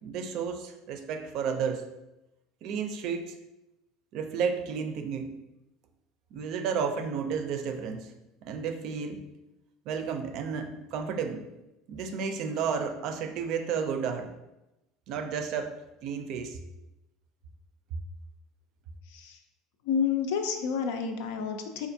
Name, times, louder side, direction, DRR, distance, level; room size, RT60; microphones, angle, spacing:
voice 1, 0.0-1.9 2.6-3.4 4.1-5.4 6.3-8.1 8.4-9.2 9.9-11.5 11.9-14.3 15.1-15.7 16.0-16.6, right 6 dB, 55° right, 6 dB, 0.4 m, -32 dB
voice 2, 19.1-19.4 19.8-21.9, left 6 dB, 80° left, 5 dB, 0.5 m, -29 dB
4.2 x 2.4 x 2.6 m, 0.96 s
cardioid pair, 140°, 0 cm